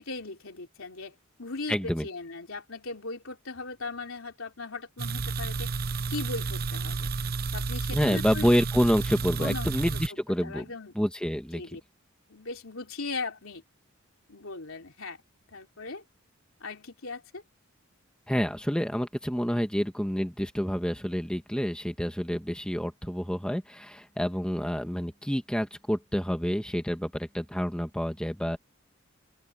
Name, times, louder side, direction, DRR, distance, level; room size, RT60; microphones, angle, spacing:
voice 1, 0.0-5.7 6.1-7.1 7.5-8.5 9.4-9.9 10.4-10.9 11.5-11.8 12.3-13.6 14.3-15.2 15.5-16.0 16.6-17.4, left 3 dB, 75° left, 3.4 m, -38 dB
voice 2, 1.7-2.1 7.9-10.6 10.9-11.8 18.3-28.6, equal, 5° left, 1.6 m, -28 dB
sound 1, 5.0-10.1, right 4 dB, 50° right, 0.8 m, -31 dB
open air
head